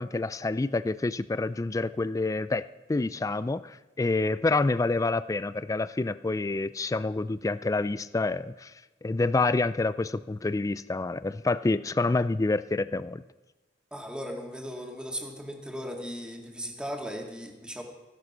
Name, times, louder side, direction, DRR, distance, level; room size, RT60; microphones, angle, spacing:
voice 1, 0.0-8.7 9.0-13.2, left 3 dB, 20° left, 15 dB, 0.3 m, -28 dB
voice 2, 13.9-17.8, equal, 5° right, 1 dB, 2.1 m, -37 dB
15.5 x 12.0 x 5.5 m, 1.2 s
head